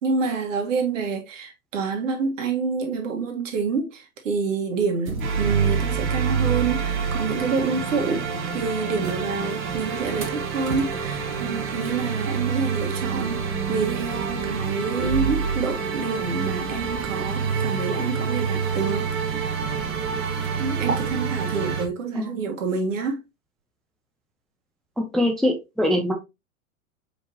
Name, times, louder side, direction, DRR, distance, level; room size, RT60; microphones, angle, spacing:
voice 1, 0.0-19.6 20.6-23.2, right 4 dB, 65° right, 1.5 m, -28 dB
sound 1, 5.1-21.9, right 6 dB, 80° right, 1.3 m, -29 dB
sound 2, 5.2-21.8, right 6 dB, 30° right, 1.0 m, -31 dB
voice 2, 25.1-26.1, left 1 dB, ahead, 0.5 m, -22 dB
4.8 x 3.7 x 2.8 m
figure-of-eight pair, 95°, 41 cm